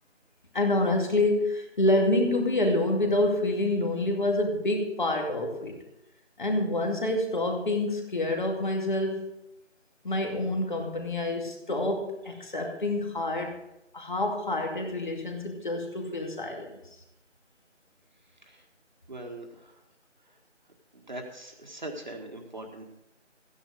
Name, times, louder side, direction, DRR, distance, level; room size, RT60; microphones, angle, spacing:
voice 1, 0.5-5.7 6.4-9.3 10.0-13.6 13.9-16.7, left 1 dB, 40° left, 2 dB, 2.5 m, -27 dB
voice 2, 19.1-19.8 20.3-20.4 20.9-23.0, right 1 dB, 40° right, 3 dB, 1.7 m, -41 dB
15.0 x 10.0 x 4.9 m, 0.86 s
figure-of-eight pair, 170°, 37 cm